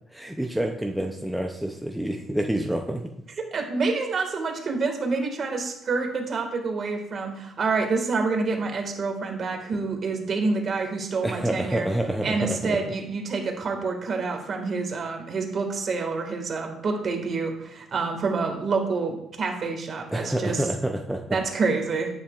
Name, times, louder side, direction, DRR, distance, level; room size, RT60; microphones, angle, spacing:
voice 1, 0.1-3.1 11.2-12.8 20.1-21.4, right 1 dB, ahead, 2 dB, 0.6 m, -28 dB
voice 2, 3.5-11.9 12.2-20.7 21.3-22.1, right 4 dB, 45° right, 3 dB, 1.8 m, -27 dB
9.8 x 8.7 x 2.4 m, 0.79 s
cardioid pair, 115°, 0 cm